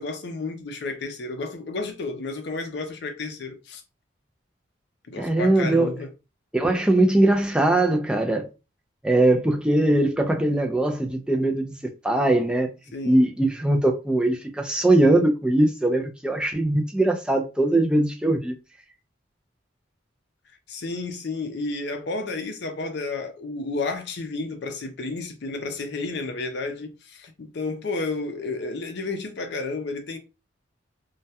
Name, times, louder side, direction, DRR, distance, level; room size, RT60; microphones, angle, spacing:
voice 1, 0.0-3.8 5.1-6.1 12.9-13.3 20.7-30.2, left 3 dB, 60° left, 0.5 m, -31 dB
voice 2, 5.2-6.0 6.5-8.5 9.0-12.7 13.0-18.5, right 1 dB, 5° right, 0.3 m, -21 dB
2.2 x 2.1 x 2.7 m
head